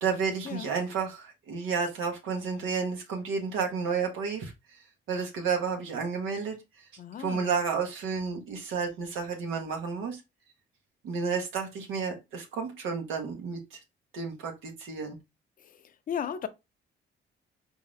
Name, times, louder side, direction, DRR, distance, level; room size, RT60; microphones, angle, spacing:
voice 1, 0.0-4.8 5.1-6.6 7.2-10.2 11.0-13.8 14.1-15.2, right 5 dB, 90° right, 1.1 m, -31 dB
voice 2, 7.0-7.5 15.6-16.5, left 8 dB, 45° left, 0.5 m, -36 dB
3.9 x 2.7 x 3.1 m
cardioid pair, 90°, 20 cm